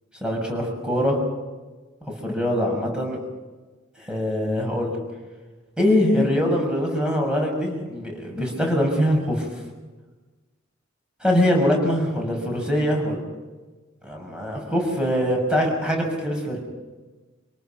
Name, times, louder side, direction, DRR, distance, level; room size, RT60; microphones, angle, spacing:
voice 1, 0.2-1.2 2.2-3.2 4.0-5.0 5.8-9.5 11.2-13.2 14.0-16.6, equal, 5° right, 0 dB, 6.5 m, -23 dB
27.0 x 18.5 x 6.0 m, 1.3 s
head